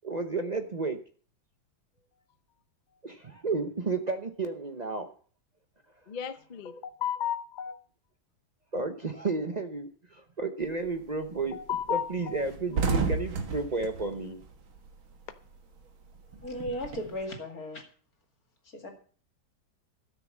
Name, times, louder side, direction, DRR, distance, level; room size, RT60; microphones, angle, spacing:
voice 1, 0.0-1.0 3.0-5.1 8.7-11.6 11.9-14.4, right 3 dB, 50° right, 7 dB, 0.4 m, -32 dB
voice 2, 6.1-7.8 11.5-12.4 12.7-13.0, left 9 dB, 65° left, 10 dB, 0.4 m, -34 dB
sound 1, 10.6-11.0 11.4-11.5 11.8-11.9 12.2-15.2 15.5-17.2, right 4 dB, 85° right, 2.3 m, -32 dB
voice 3, 16.4-17.8 18.8-18.9, equal, 45° left, 3 dB, 2.8 m, -35 dB
13.0 x 6.7 x 7.4 m, 0.43 s
omnidirectional pair, 2.1 m